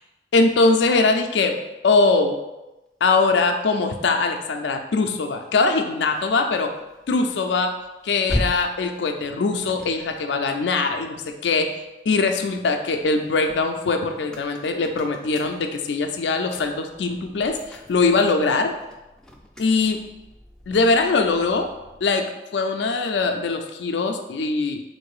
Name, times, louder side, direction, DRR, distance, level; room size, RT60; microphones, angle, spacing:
voice 1, 0.3-1.6 1.8-2.4 3.0-6.7 7.1-7.8 8.0-11.7 12.1-18.7 19.6-20.0 20.7-21.7 22.0-22.3 22.5-24.8, left 3 dB, 80° left, 5 dB, 0.4 m, -21 dB
sound 1, 5.4-11.9 12.4-22.2, left 1 dB, 5° left, 0.3 m, -38 dB
3.9 x 2.6 x 4.7 m, 0.99 s
head